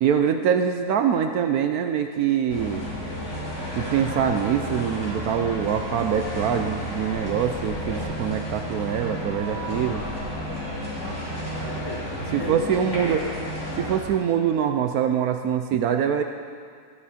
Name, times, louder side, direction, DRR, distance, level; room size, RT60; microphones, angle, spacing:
voice 1, 0.0-2.8 3.7-10.0 12.3-13.2 13.8-16.2, right 8 dB, 75° right, 6 dB, 1.1 m, -24 dB
sound 1, 2.5-14.0, equal, 45° left, 3.3 m, -32 dB
voice 2, 10.9-12.6 13.0-13.3, left 1 dB, 15° left, -5 dB, 1.9 m, -37 dB
14.0 x 9.9 x 4.2 m, 2.2 s
omnidirectional pair, 1.7 m